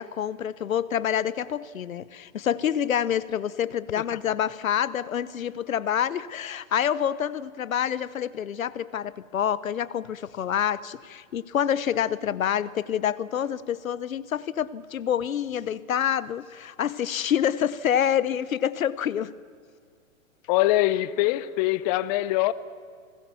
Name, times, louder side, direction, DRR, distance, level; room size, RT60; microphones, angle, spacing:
voice 1, 0.0-19.3, left 9 dB, 85° left, 1.1 m, -27 dB
voice 2, 20.5-22.5, left 16 dB, 30° left, 0.7 m, -23 dB
29.5 x 20.0 x 7.1 m
hypercardioid pair, 135°, 40 cm